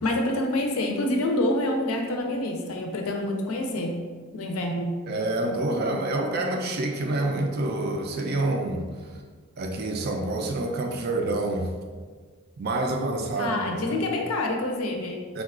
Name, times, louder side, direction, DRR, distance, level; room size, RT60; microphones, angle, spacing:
voice 1, 0.0-4.0 4.3-5.0 13.4-15.2, left 1 dB, 85° left, 2 dB, 0.5 m, -27 dB
voice 2, 5.1-8.9 9.6-11.7 12.6-14.0 15.3-15.4, right 2 dB, 50° right, 2 dB, 0.3 m, -27 dB
3.6 x 2.2 x 2.4 m, 1.5 s
head